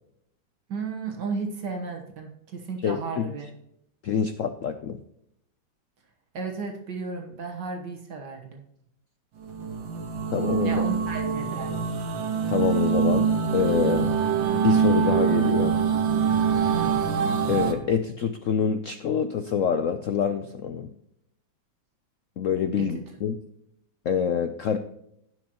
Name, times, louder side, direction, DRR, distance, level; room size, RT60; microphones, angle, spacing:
voice 1, 0.7-3.5 6.3-8.6 10.6-11.9 16.6-17.0 22.8-22.9, right 4 dB, 65° right, 3 dB, 1.8 m, -34 dB
voice 2, 2.8-3.2 4.0-5.0 10.3-10.8 12.5-14.2 14.5-15.8 17.5-20.9 22.4-23.4 24.0-24.8, left 7 dB, 75° left, 9 dB, 0.7 m, -26 dB
sound 1, 9.4-17.7, right 7 dB, 90° right, 1.9 m, -24 dB
16.0 x 6.2 x 2.9 m, 0.77 s
omnidirectional pair, 2.1 m